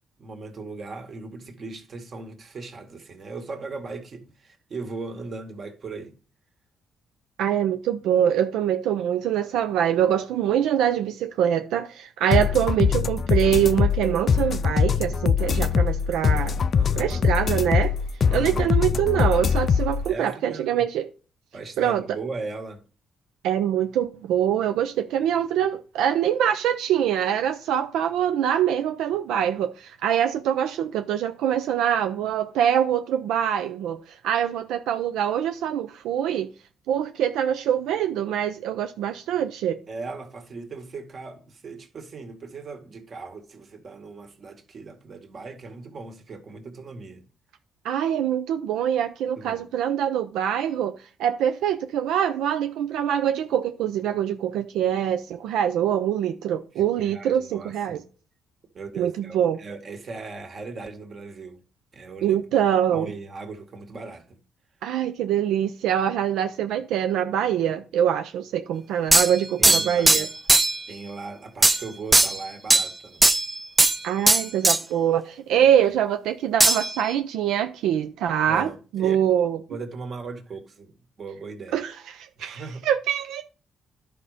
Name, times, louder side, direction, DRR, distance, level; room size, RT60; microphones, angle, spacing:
voice 1, 0.2-6.1 16.7-17.3 18.3-18.7 20.0-20.8 21.5-22.8 39.9-47.2 49.4-49.7 56.8-58.1 58.7-61.6 61.9-62.4 62.9-64.4 69.6-70.3 70.9-73.2 75.5-75.7 78.4-79.2 79.7-81.8 82.4-82.9, right 3 dB, 50° right, 2.0 m, -38 dB
voice 2, 7.4-16.6 16.9-17.9 18.3-21.1 21.8-22.0 23.4-36.5 36.9-39.8 47.8-50.9 51.2-58.0 59.0-59.6 62.2-63.1 64.8-70.3 74.0-79.6 81.7-83.4, right 10 dB, 90° right, 0.6 m, -24 dB
sound 1, 12.3-20.1, left 6 dB, 50° left, 0.5 m, -22 dB
sound 2, 69.1-70.8 71.6-71.8 72.1-72.9 73.2-74.0 74.3-74.8 76.6-77.1, right 2 dB, 15° right, 0.5 m, -18 dB
11.0 x 5.3 x 5.0 m
cardioid pair, 90°, 0 cm